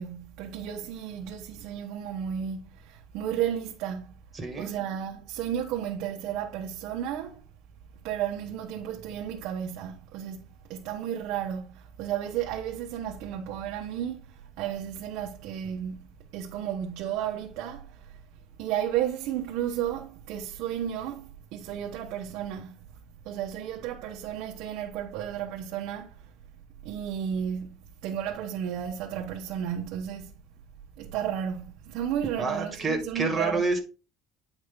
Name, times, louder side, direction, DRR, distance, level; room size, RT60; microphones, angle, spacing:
voice 1, 0.0-4.2 4.6-7.4 8.0-18.2 18.6-23.0 23.2-26.3 26.8-30.3 31.0-33.6, right 9 dB, 70° right, 1.0 m, -33 dB
voice 2, 4.3-4.7 32.4-33.8, right 3 dB, 15° right, 2.0 m, -28 dB
8.9 x 5.1 x 3.7 m
cardioid pair, 155°, 0 cm